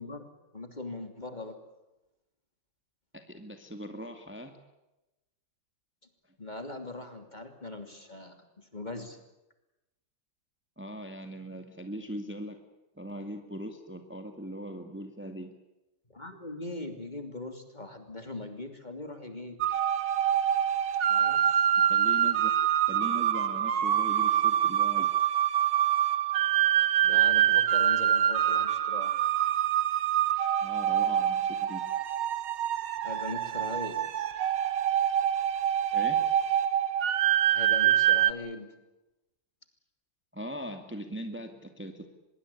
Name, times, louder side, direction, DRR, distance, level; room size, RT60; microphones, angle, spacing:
voice 1, 0.0-1.6 6.4-9.2 16.1-19.6 21.1-21.7 27.0-29.2 33.0-34.1 37.5-38.7, left 2 dB, 20° left, 6 dB, 3.0 m, -40 dB
voice 2, 3.1-4.6 10.8-12.6 13.0-15.5 21.8-25.1 30.6-31.8 35.9-36.3 40.3-42.1, equal, 5° right, 6 dB, 2.1 m, -40 dB
sound 1, 19.6-38.3, right 10 dB, 65° right, 1.7 m, -25 dB
24.5 x 22.0 x 8.6 m, 0.97 s
omnidirectional pair, 2.1 m